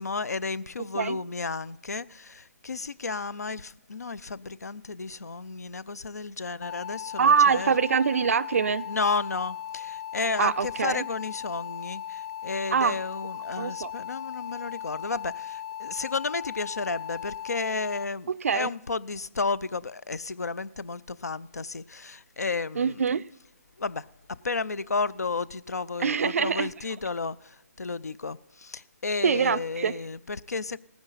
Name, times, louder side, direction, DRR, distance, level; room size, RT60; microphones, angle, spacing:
voice 1, 0.0-7.7 8.9-23.0 23.8-30.8, left 4 dB, 85° left, 0.4 m, -32 dB
sound 1, 6.6-18.0, left 10 dB, 15° left, 0.3 m, -38 dB
voice 2, 7.2-8.8 10.4-11.0 12.7-13.0 13.6-13.9 18.3-18.7 22.8-23.3 26.0-26.7 29.2-30.0, right 6 dB, 60° right, 0.4 m, -24 dB
17.5 x 9.6 x 4.0 m
figure-of-eight pair, 145°, 8 cm